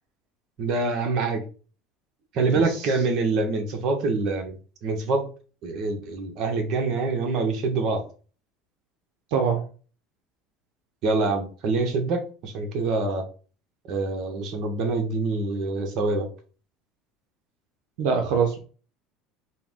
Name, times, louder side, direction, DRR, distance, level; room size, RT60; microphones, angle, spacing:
voice 1, 0.6-1.4 2.3-4.6 4.8-5.2 5.6-8.0 11.0-13.2 13.9-16.3, right 3 dB, 55° right, 4 dB, 1.1 m, -25 dB
voice 2, 2.5-2.9 9.3-9.6 18.0-18.6, right 6 dB, 80° right, 3 dB, 0.8 m, -24 dB
4.5 x 2.2 x 3.7 m, 0.38 s
supercardioid pair, 105°, 0 cm